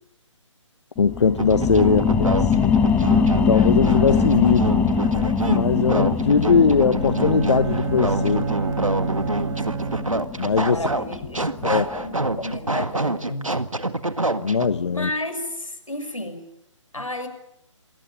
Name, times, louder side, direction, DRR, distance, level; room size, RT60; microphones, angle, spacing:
voice 1, 1.0-2.8 3.5-4.8 5.4-8.5 10.4-10.9 11.6-11.8 14.4-15.1, left 5 dB, 60° left, 13 dB, 1.0 m, -20 dB
sound 1, 1.0-12.1 12.6-12.7, left 6 dB, 10° left, 1.2 m, -23 dB
sound 2, 1.4-14.7, right 2 dB, 90° right, 1.8 m, -27 dB
voice 2, 1.8-2.6 10.7-13.6 14.9-16.5 16.9-17.3, left 1 dB, 85° left, 8 dB, 6.4 m, -32 dB
Bowed string instrument, 6.7-10.5, right 5 dB, 60° right, 2.3 m, -29 dB
28.0 x 19.5 x 8.9 m, 0.80 s
figure-of-eight pair, 140°, 17 cm